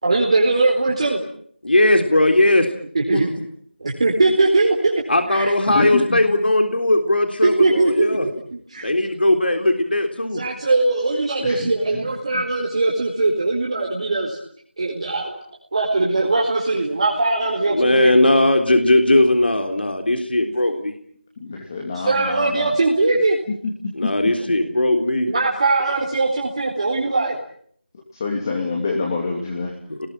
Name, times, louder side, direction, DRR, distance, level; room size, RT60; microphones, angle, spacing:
voice 1, 0.0-1.2 2.9-3.3 3.8-5.0 5.3-6.0 7.4-8.1 8.5-8.9 10.3-14.4 14.8-15.3 15.7-18.1 21.9-23.4 24.9-25.0 25.2-27.4, right 2 dB, 35° right, -1 dB, 4.2 m, -20 dB
voice 2, 1.6-2.7 3.1-3.2 5.1-8.3 8.8-10.4 17.7-20.9 23.9-25.3 29.9-30.1, left 1 dB, 70° left, 5 dB, 3.6 m, -18 dB
voice 3, 5.7-6.2 11.4-11.7 21.4-22.7 28.1-29.7, left 3 dB, 20° left, -1 dB, 2.9 m, -26 dB
28.5 x 20.5 x 9.1 m, 0.63 s
figure-of-eight pair, 170°, 6 cm